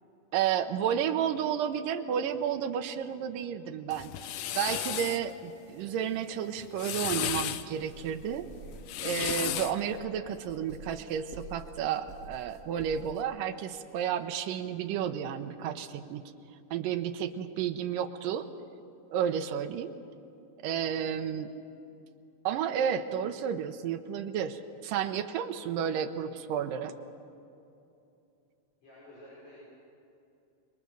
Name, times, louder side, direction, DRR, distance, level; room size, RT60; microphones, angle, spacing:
voice 1, 0.3-4.1 4.6-8.5 9.0-16.2 16.7-18.5 19.1-20.0 20.6-21.5 22.4-26.9, right 8 dB, 85° right, 6 dB, 2.5 m, -32 dB
sound 1, 3.9-5.2 6.6-7.7 8.7-9.8, left 11 dB, 90° left, 1.4 m, -33 dB
sound 2, 7.8-13.2, right 3 dB, 35° right, 1.5 m, -49 dB
voice 2, 20.8-21.1 28.8-29.6, left 1 dB, 75° left, -9 dB, 8.1 m, -52 dB
26.0 x 22.5 x 6.8 m, 2.7 s
omnidirectional pair, 3.9 m